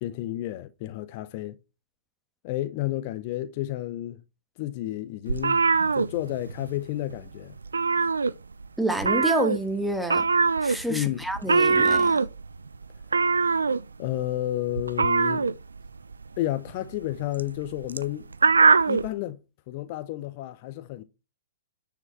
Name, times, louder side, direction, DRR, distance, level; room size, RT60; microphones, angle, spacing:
voice 1, 0.0-1.6 2.4-4.2 4.6-5.6 6.0-7.6 10.9-11.2 14.0-15.5 16.4-18.3 18.8-21.0, left 15 dB, 45° left, 0.6 m, -31 dB
sound 1, 5.3-6.8 7.0-7.3 7.6-8.7 9.0-19.1, right 4 dB, 75° right, 0.5 m, -23 dB
voice 2, 8.8-10.3 10.6-12.2, right 1 dB, ahead, 1.4 m, -28 dB
9.6 x 5.1 x 4.5 m
figure-of-eight pair, 110°, 0 cm